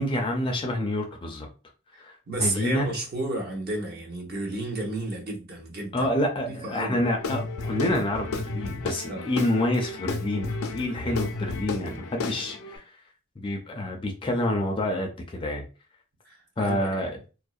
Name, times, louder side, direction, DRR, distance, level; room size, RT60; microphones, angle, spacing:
voice 1, 0.0-1.5 1.9-2.9 5.9-12.9 13.4-15.6 16.6-17.1, left 1 dB, 25° left, 0.4 m, -28 dB
voice 2, 2.3-6.1 6.6-7.0 9.1-9.3 16.2-17.1, right 2 dB, 50° right, 0.8 m, -32 dB
Guitar / Drum, 7.2-12.8, left 3 dB, 85° left, 0.4 m, -33 dB
2.6 x 2.0 x 2.3 m
head